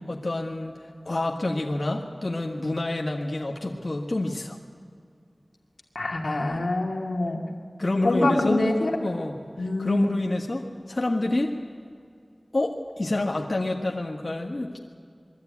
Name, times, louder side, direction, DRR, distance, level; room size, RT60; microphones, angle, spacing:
voice 1, 0.1-0.7 1.1-4.6 7.8-8.6 9.0-11.5 12.5-14.8, left 2 dB, 55° left, 0 dB, 1.7 m, -28 dB
voice 2, 5.9-7.4 8.0-9.0 9.6-10.0, left 2 dB, 90° left, 1 dB, 2.2 m, -25 dB
22.0 x 14.0 x 9.5 m, 2.3 s
wide cardioid pair, 60°, 0 cm